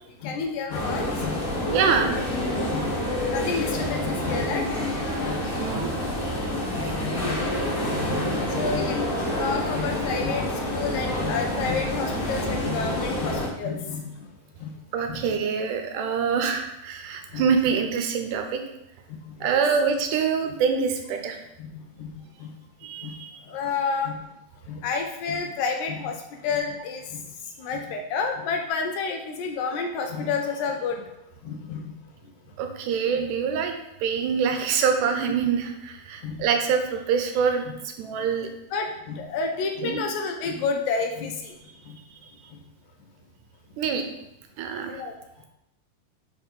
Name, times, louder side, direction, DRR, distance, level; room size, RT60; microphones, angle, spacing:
voice 1, 0.2-1.4 1.7-1.8 2.7-2.9 3.3-4.7 5.3-5.5 5.8-6.0 6.5-7.8 8.2-14.2 14.6-14.7 15.1-15.4 17.3-17.4 19.1-19.6 21.6-22.5 23.0-23.2 23.5-24.2 24.7-27.2 27.6-31.1 31.4-32.0 36.2-36.5 38.7-41.6 41.9-42.0 44.9-45.1, left 5 dB, 75° left, 3 dB, 1.8 m, -30 dB
sound 1, 0.7-13.5, left 1 dB, 50° left, 1.9 m, -28 dB
voice 2, 1.7-2.2 5.6-6.0 14.9-18.6 19.4-21.4 22.8-23.3 32.6-33.7 34.0-37.7 38.0-38.5 39.8-40.0 43.8-44.0 44.6-45.0, right 6 dB, 85° right, 5 dB, 2.3 m, -25 dB
5.0 x 4.5 x 5.2 m, 0.85 s
omnidirectional pair, 3.6 m